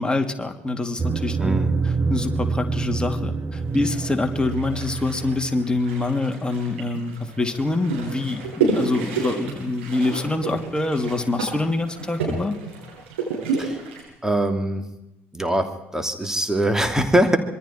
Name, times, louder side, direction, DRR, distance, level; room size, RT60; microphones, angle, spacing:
voice 1, 0.0-1.6 2.1-12.6, left 2 dB, 15° left, 5 dB, 2.9 m, -25 dB
sound 1, 1.0-5.8, right 4 dB, 30° right, 1.5 m, -26 dB
voice 2, 1.4-1.7 13.6-13.8 14.2-14.9 15.3-17.4, right 1 dB, 10° right, 7 dB, 2.8 m, -22 dB
sound 2, 3.7-14.0, right 4 dB, 75° right, 7.7 m, -30 dB
26.0 x 22.5 x 4.6 m, 0.89 s
figure-of-eight pair, 50°, 7 cm